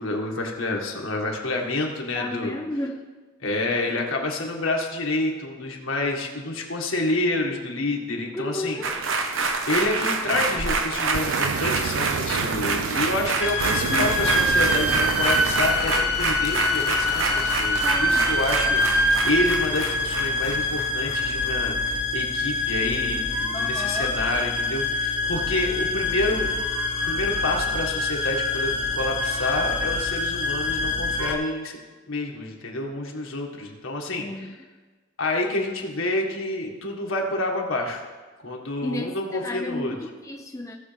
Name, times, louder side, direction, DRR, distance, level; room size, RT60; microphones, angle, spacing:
voice 1, 0.0-2.5 3.4-8.8 9.1-26.5 27.0-31.8 32.1-34.6 35.2-38.0 38.4-40.0, left 2 dB, 70° left, 0 dB, 1.8 m, -28 dB
voice 2, 2.2-2.9 8.3-8.9 13.9-14.1 17.8-18.3 23.5-24.1 34.2-34.5 38.8-40.7, left 1 dB, 15° left, 1 dB, 0.6 m, -32 dB
sound 1, 8.8-21.5 21.9-22.0, right 4 dB, 65° right, 1.0 m, -27 dB
sound 2, 10.3-10.7 11.0-15.9, right 7 dB, 85° right, 0.4 m, -31 dB
sound 3, 13.4-31.3, left 2 dB, 5° right, 1.0 m, -25 dB
17.5 x 6.9 x 3.4 m, 1.3 s
head